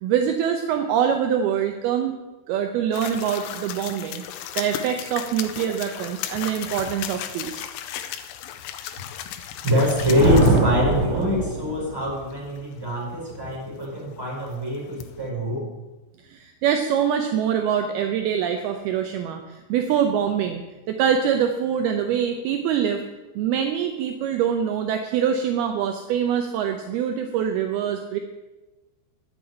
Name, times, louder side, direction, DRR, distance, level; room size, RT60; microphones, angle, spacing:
voice 1, 0.0-2.2 2.5-4.2 4.6-7.7 16.2-20.6 20.9-23.0 23.4-28.2, right 8 dB, 80° right, 6 dB, 2.2 m, -24 dB
sound 1, 2.9-15.3, left 10 dB, 85° left, 3.2 m, -36 dB
voice 2, 9.6-15.7, left 1 dB, 5° right, -4 dB, 4.7 m, -24 dB
Thunder, 9.9-12.1, right 4 dB, 45° right, 3.6 m, -22 dB
11.0 x 7.7 x 9.9 m, 1.1 s
omnidirectional pair, 5.5 m